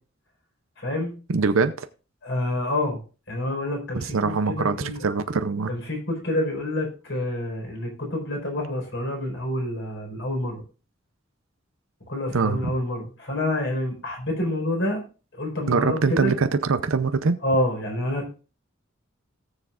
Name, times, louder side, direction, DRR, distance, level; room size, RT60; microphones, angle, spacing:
voice 1, 0.8-1.1 2.2-3.0 3.3-5.0 5.7-10.6 12.1-15.0 15.3-16.3 17.4-18.4, left 1 dB, 65° left, 1 dB, 4.7 m, -28 dB
voice 2, 1.3-1.9 3.9-5.7 12.3-12.6 15.7-17.4, right 4 dB, 90° right, 10 dB, 0.6 m, -23 dB
18.0 x 7.1 x 2.5 m, 0.34 s
head